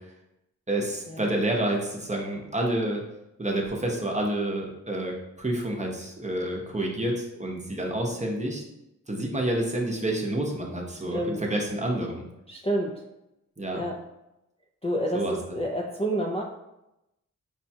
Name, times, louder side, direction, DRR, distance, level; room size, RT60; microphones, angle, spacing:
voice 1, 0.7-3.0 3.4-5.1 5.4-8.6 9.1-12.2 13.6-13.8 15.1-15.3, right 1 dB, 20° right, 0 dB, 0.7 m, -28 dB
voice 2, 11.1-11.4 12.5-13.0 13.7-14.0 14.8-16.4, right 1 dB, 20° left, -1 dB, 0.4 m, -29 dB
4.9 x 2.2 x 2.7 m, 0.90 s
wide cardioid pair, 65°, 32 cm